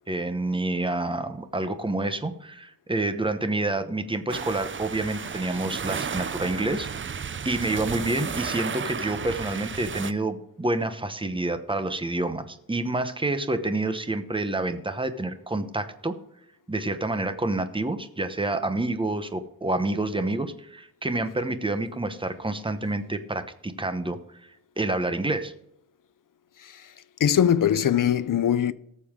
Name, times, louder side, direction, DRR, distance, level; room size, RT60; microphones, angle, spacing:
voice 1, 0.1-6.9 7.4-16.1 16.7-24.2 24.8-25.5, right 2 dB, 15° right, 0.9 m, -28 dB
sound 1, 4.3-10.1, right 6 dB, 35° right, 0.4 m, -33 dB
voice 2, 27.2-28.7, left 9 dB, 55° left, 0.6 m, -21 dB
18.5 x 7.0 x 3.7 m
wide cardioid pair, 140°, 38 cm